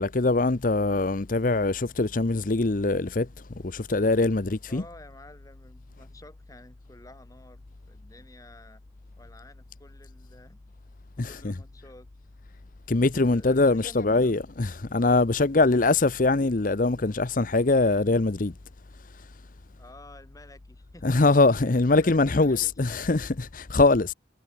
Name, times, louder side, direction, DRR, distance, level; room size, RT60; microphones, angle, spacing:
voice 1, 0.0-3.3 3.6-4.8 11.2-11.5 12.9-18.5 19.1-19.3 21.0-24.1, left 3 dB, 45° left, 0.8 m, -23 dB
voice 2, 4.7-8.8 9.2-10.6 11.2-12.1 13.0-14.5 19.8-21.2 21.6-23.1, left 1 dB, 20° left, 7.6 m, -51 dB
head